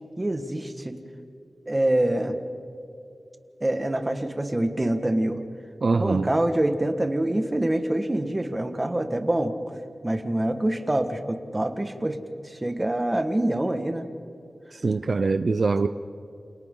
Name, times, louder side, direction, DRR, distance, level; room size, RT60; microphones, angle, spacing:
voice 1, 0.2-1.0 1.6-2.4 3.6-5.4 5.9-9.5 10.0-12.2 12.4-14.0, right 1 dB, 20° right, 6 dB, 1.7 m, -25 dB
voice 2, 5.8-6.3 14.7-15.9, right 3 dB, 60° right, 10 dB, 0.6 m, -23 dB
29.0 x 27.5 x 3.9 m, 2.7 s
wide cardioid pair, 105°, 0 cm